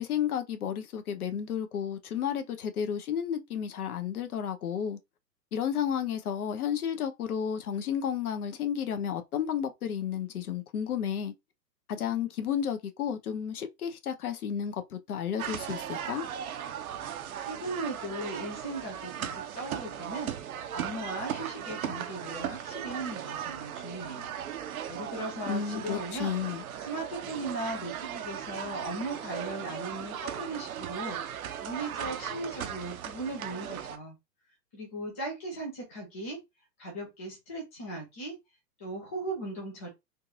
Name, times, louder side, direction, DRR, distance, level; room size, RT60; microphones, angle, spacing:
voice 1, 0.0-5.0 5.5-11.3 11.9-16.2 25.5-26.6, left 8 dB, 60° left, 0.9 m, -32 dB
sound 1, 15.4-34.0, right 9 dB, 55° right, 0.7 m, -37 dB
voice 2, 17.4-20.3 20.7-24.3 24.9-26.4 26.8-31.2 31.6-34.2 34.7-36.4 36.8-38.3 38.8-39.9, right 2 dB, 10° left, 0.4 m, -38 dB
3.8 x 2.4 x 2.7 m
figure-of-eight pair, 120°, 50 cm